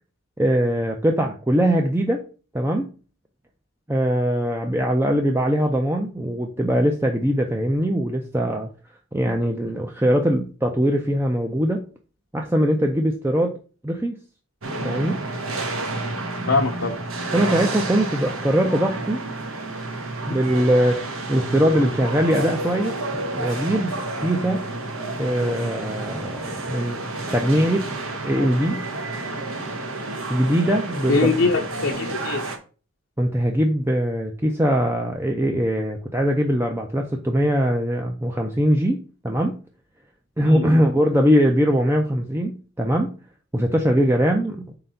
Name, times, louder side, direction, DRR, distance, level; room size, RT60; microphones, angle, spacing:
voice 1, 0.4-2.2 2.5-2.9 3.9-8.7 9.1-11.8 12.3-13.5 13.8-14.2 14.8-15.2 17.3-19.2 20.3-21.0 21.3-23.0 23.3-24.6 25.2-27.0 27.3-27.9 28.2-28.8 30.3-31.3 33.2-39.6 40.4-43.1 43.5-44.8, equal, 10° right, 2 dB, 0.5 m, -21 dB
sound 1, 14.6-32.6, right 2 dB, 75° right, 1.1 m, -30 dB
voice 2, 16.5-16.9 31.1-32.5 40.4-40.7, left 3 dB, 70° left, -1 dB, 0.8 m, -22 dB
4.4 x 3.9 x 5.6 m, 0.37 s
head